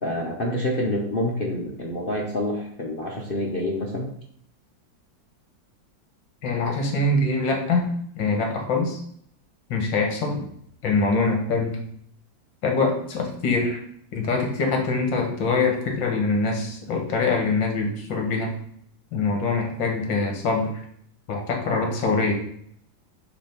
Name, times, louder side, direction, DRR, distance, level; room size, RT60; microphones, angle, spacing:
voice 1, 0.0-4.1, left 1 dB, 45° left, -1 dB, 0.7 m, -27 dB
voice 2, 6.4-9.0 9.7-10.4 10.8-11.8 12.6-13.8 14.1-18.5 19.1-20.7 21.3-22.3, left 3 dB, 70° left, 2 dB, 1.9 m, -24 dB
6.7 x 3.1 x 5.8 m, 0.66 s
omnidirectional pair, 2.1 m